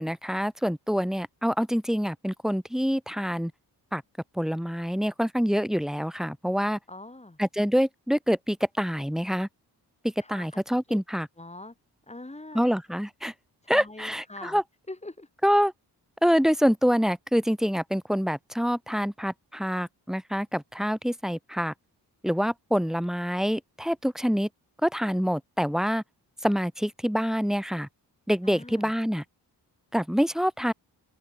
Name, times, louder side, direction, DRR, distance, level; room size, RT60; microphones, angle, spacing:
voice 1, 0.0-3.5 3.9-4.0 4.4-6.8 7.4-9.5 10.3-11.3 12.5-13.3 13.7-14.6 15.4-15.7 16.2-21.7 22.2-24.5 24.8-26.0 26.4-27.9 28.3-29.2 29.9-30.7, equal, ahead, 5.4 m, -26 dB
voice 2, 6.9-7.4 10.2-10.6 10.9-11.0 11.4-11.7 12.1-12.7 13.6-14.6 14.9-15.3 28.4-28.9, left 2 dB, 15° left, 7.4 m, -43 dB
open air
cardioid pair, 80°, 41 cm